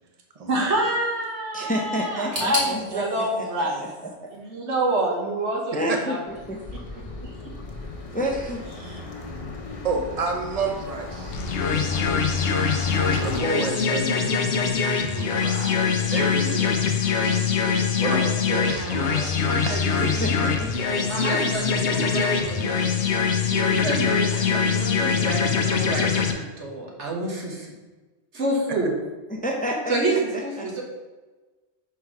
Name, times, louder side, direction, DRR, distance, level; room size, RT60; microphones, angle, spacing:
voice 1, 0.5-3.8 4.3-6.2 7.1-7.5 8.8-9.0 18.5-20.3 21.1-22.9 23.5-27.7 28.3-28.9 29.9-30.8, right 2 dB, 80° right, -1 dB, 1.7 m, -28 dB
voice 2, 1.5-3.5 3.8-4.3 5.7-6.6 6.9-7.0 8.1-8.6 16.4-16.5 20.0-21.1 29.3-30.7, equal, 10° left, 0 dB, 0.6 m, -30 dB
sound 1, 2.3-5.2 5.4-6.3 6.6-6.7 7.5-7.6, equal, 55° right, 2.0 m, -34 dB
sound 2, 6.3-13.4, left 3 dB, 35° left, 0.9 m, -36 dB
voice 3, 9.8-11.4 11.7-12.5 13.1-14.3 15.0-15.7 16.1-16.7 17.1-17.3 18.0-19.8 20.1-20.2, right 3 dB, 35° right, 2 dB, 0.9 m, -30 dB
sound 3, 11.3-26.3, left 5 dB, 80° left, 1.0 m, -23 dB
5.7 x 4.6 x 4.7 m, 1.2 s
omnidirectional pair, 1.1 m